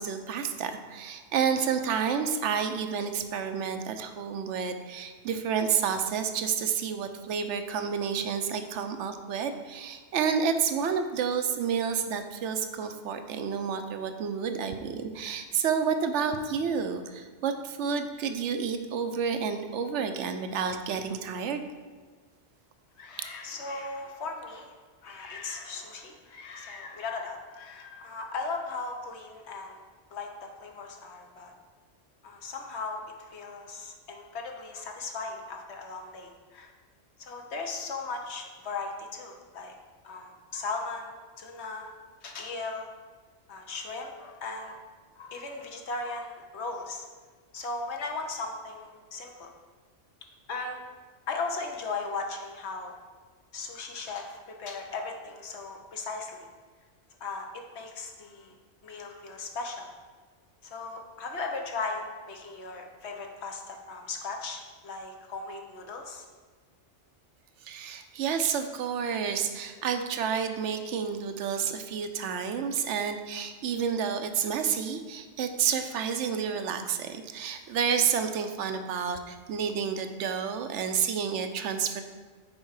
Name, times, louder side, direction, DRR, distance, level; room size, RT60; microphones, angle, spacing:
voice 1, 0.0-21.6 67.6-82.0, right 7 dB, 75° right, 8 dB, 0.9 m, -30 dB
voice 2, 23.0-24.7 25.0-29.8 30.1-31.5 32.2-36.7 37.2-39.7 40.0-41.9 42.2-42.9 43.5-44.8 45.1-47.1 47.5-49.5 50.5-50.8 51.3-53.0 53.5-56.5 57.2-58.5 58.8-59.9 60.6-66.3, left 3 dB, 65° left, 3 dB, 1.1 m, -37 dB
6.4 x 4.6 x 4.7 m, 1.4 s
omnidirectional pair, 1.2 m